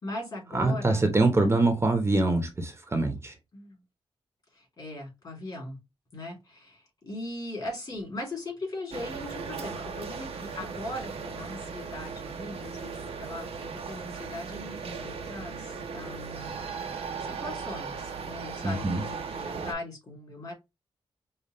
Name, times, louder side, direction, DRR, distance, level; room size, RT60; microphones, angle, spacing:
voice 1, 0.0-1.3 3.5-3.8 4.5-5.8 6.1-16.6 17.2-20.5, left 2 dB, 45° left, 3.0 m, -39 dB
voice 2, 0.5-3.3 18.6-19.0, right 2 dB, 25° right, 0.8 m, -24 dB
sound 1, 8.9-19.7, right 5 dB, 90° right, 0.9 m, -37 dB
5.3 x 2.4 x 3.1 m
wide cardioid pair, 145°, 10 cm